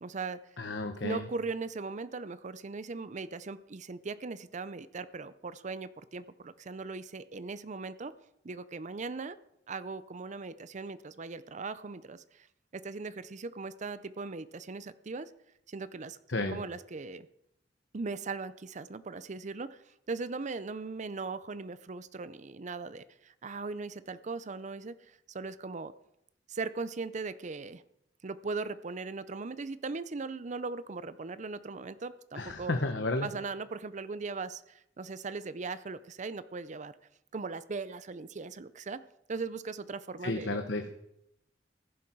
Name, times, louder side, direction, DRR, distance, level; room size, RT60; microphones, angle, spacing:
voice 1, 0.0-0.4 1.0-8.1 8.4-9.4 9.7-12.5 12.7-15.3 15.7-16.2 16.5-17.3 17.9-25.9 26.5-27.8 28.2-32.7 33.2-37.0 37.3-39.0 39.3-40.6, right 4 dB, 45° right, 15 dB, 0.6 m, -39 dB
voice 2, 0.6-1.2 16.3-16.6 32.3-33.3 40.2-40.9, left 2 dB, 90° left, 6 dB, 1.2 m, -32 dB
15.0 x 11.0 x 4.6 m, 0.80 s
head